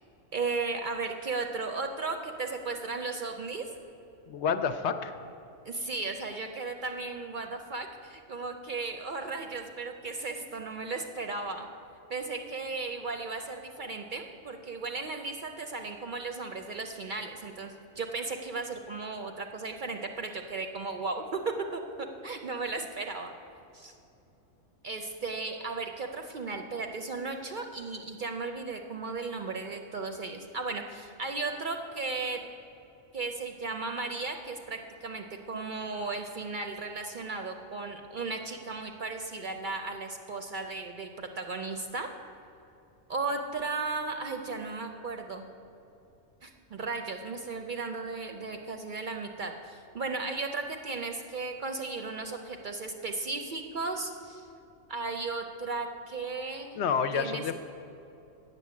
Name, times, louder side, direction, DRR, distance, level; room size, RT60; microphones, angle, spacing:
voice 1, 0.3-3.7 5.6-11.7 12.1-23.3 23.7-23.9 24.8-32.4 33.1-42.1 43.1-45.5 46.4-54.5 54.9-56.8 57.1-57.5, right 3 dB, 55° right, 5 dB, 0.6 m, -35 dB
voice 2, 4.3-5.2 56.8-57.5, left 6 dB, 65° left, 9 dB, 0.8 m, -29 dB
8.5 x 6.6 x 8.4 m, 2.8 s
omnidirectional pair, 1.3 m